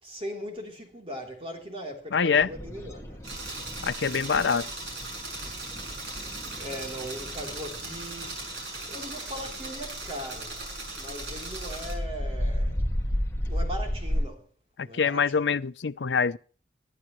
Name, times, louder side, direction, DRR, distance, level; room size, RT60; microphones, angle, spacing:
voice 1, 0.0-3.2 6.3-8.4 8.9-10.6 10.9-12.8 13.4-14.5 14.8-15.2, equal, 30° right, 3.3 m, -39 dB
voice 2, 2.1-2.5 3.8-4.7 14.8-16.4, left 6 dB, 90° left, 0.6 m, -25 dB
sound 1, 2.4-14.3, equal, 15° left, 1.9 m, -34 dB
sound 2, 3.2-11.9, right 2 dB, 80° right, 6.4 m, -38 dB
23.5 x 11.0 x 3.1 m
head